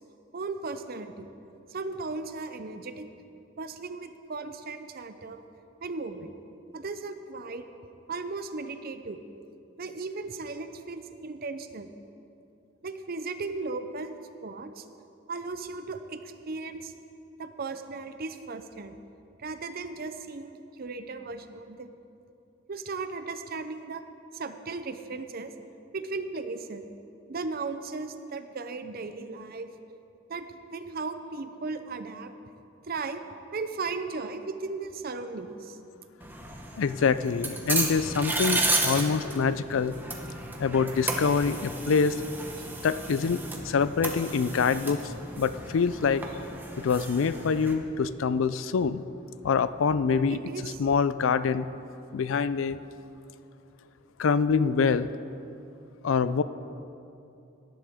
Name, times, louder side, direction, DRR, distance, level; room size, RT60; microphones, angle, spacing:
voice 1, 0.3-1.3 1.7-3.1 3.6-5.4 5.8-6.3 6.7-7.7 8.1-9.2 9.8-11.9 12.8-14.2 14.4-14.9 15.3-16.9 17.4-19.0 19.4-21.9 22.7-24.0 24.3-25.5 25.9-26.9 27.3-29.7 30.3-32.3 32.8-33.2 33.5-35.8 38.9-39.1 47.9-48.1 50.1-50.9, right 3 dB, 50° right, 9 dB, 0.6 m, -36 dB
sound 1, 36.2-47.7, right 2 dB, 10° right, 1.1 m, -33 dB
voice 2, 36.8-40.0 40.6-42.2 42.8-43.4 43.6-46.2 46.8-49.0 49.4-51.6 52.1-52.8 54.2-55.1 56.0-56.4, left 5 dB, 80° left, 15 dB, 0.4 m, -25 dB
18.0 x 10.5 x 3.6 m, 2.7 s
head